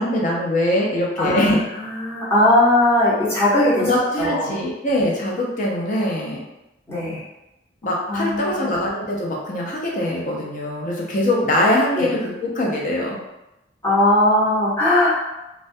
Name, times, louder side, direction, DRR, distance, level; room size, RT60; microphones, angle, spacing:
voice 1, 0.0-1.6 3.8-6.4 7.8-13.2, left 1 dB, 45° left, -2 dB, 0.5 m, -22 dB
voice 2, 1.2-3.9 4.2-4.6 6.9-7.2 8.1-8.7 12.0-12.1 13.8-15.1, left 1 dB, 15° left, -9 dB, 0.8 m, -19 dB
2.3 x 2.1 x 2.6 m, 0.94 s
head